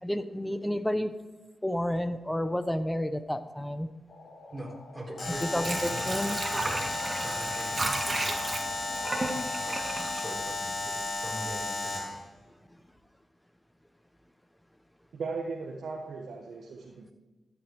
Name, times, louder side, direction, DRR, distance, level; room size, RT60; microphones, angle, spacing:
voice 1, 0.0-1.1 1.6-3.9 5.5-6.4, equal, 10° left, 11 dB, 1.0 m, -30 dB
sound 1, 4.1-9.8, left 2 dB, 70° left, 2.1 m, -50 dB
voice 2, 4.5-8.4 8.8-9.2 9.6-12.2, equal, 20° right, -1 dB, 4.4 m, -43 dB
Alarm, 5.2-12.2, left 2 dB, 50° left, 3.5 m, -33 dB
Water / Sink (filling or washing), 5.3-11.1 11.5-11.6, right 2 dB, 35° right, 1.9 m, -34 dB
voice 3, 15.1-17.1, right 4 dB, 75° right, 0 dB, 1.4 m, -37 dB
13.0 x 8.9 x 4.8 m, 1.2 s
cardioid pair, 50°, 0 cm